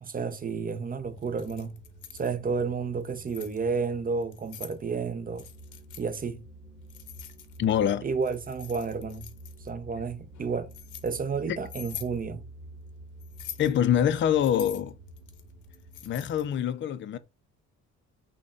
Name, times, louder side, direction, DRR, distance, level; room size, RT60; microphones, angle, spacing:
voice 1, 0.0-1.8 2.1-5.4 6.0-6.4 8.0-9.3 9.6-10.7 11.0-12.4, right 5 dB, 30° right, 0.6 m, -31 dB
sound 1, 0.9-16.5, right 1 dB, 5° right, 1.3 m, -49 dB
Keys jangling, 1.2-2.3 3.0-3.6 4.2-4.8 5.4-6.0 6.9-7.8 8.2-9.7 10.3-11.1 11.6-12.1 13.2-13.8 14.4-16.5, left 10 dB, 80° left, 0.7 m, -44 dB
voice 2, 7.6-8.1 13.6-15.0 16.0-17.2, left 9 dB, 40° left, 0.4 m, -25 dB
3.8 x 2.2 x 3.6 m
cardioid pair, 90°, 30 cm